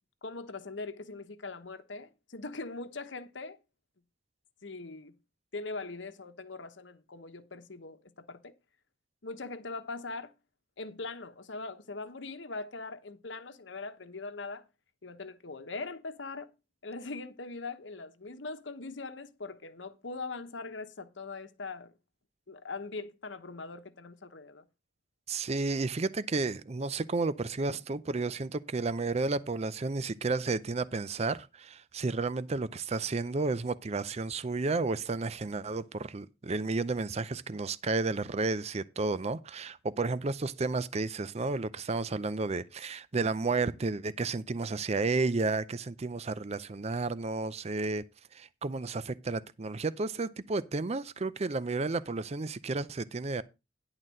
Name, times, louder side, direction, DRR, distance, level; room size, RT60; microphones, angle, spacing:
voice 1, 0.2-3.6 4.6-5.1 5.5-8.5 9.2-10.3 10.8-14.6 15.0-16.5 16.8-21.9 22.5-24.6 27.7-27.8, left 3 dB, 75° left, 1.1 m, -41 dB
voice 2, 25.3-48.0 48.3-53.4, right 3 dB, 35° right, 0.5 m, -32 dB
11.0 x 4.0 x 7.5 m
head